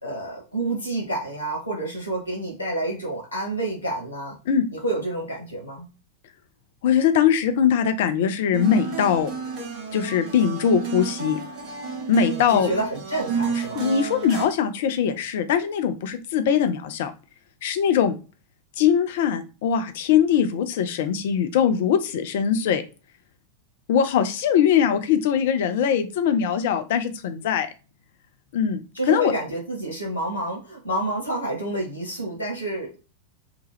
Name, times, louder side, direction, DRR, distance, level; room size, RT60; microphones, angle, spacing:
voice 1, 0.0-4.4 4.7-5.9 12.2-13.8 28.9-33.0, right 2 dB, 90° right, -1 dB, 0.9 m, -29 dB
voice 2, 6.8-9.3 9.9-11.4 12.1-12.7 13.8-17.1 17.6-18.2 18.8-22.8 23.9-27.7 28.5-28.8 29.1-29.3, left 8 dB, 55° left, 9 dB, 0.4 m, -21 dB
sound 1, 8.5-14.4, right 5 dB, 40° right, 1.2 m, -31 dB
2.9 x 2.2 x 3.2 m, 0.33 s
figure-of-eight pair, 90°, 0 cm